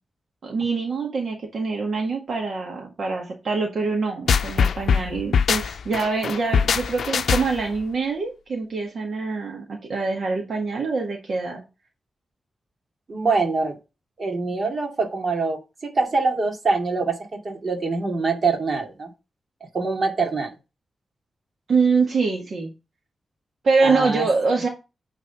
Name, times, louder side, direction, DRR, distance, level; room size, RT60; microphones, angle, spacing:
voice 1, 0.4-11.6 21.7-22.7 23.6-24.7, right 4 dB, 65° right, 0 dB, 1.9 m, -24 dB
sound 1, 4.3-7.8, left 6 dB, 85° left, 0.5 m, -22 dB
voice 2, 13.1-13.8 14.2-19.1 19.7-20.5 23.8-24.3, right 3 dB, 40° right, 2 dB, 2.5 m, -24 dB
9.7 x 4.1 x 5.5 m, 0.27 s
wide cardioid pair, 130°, 0 cm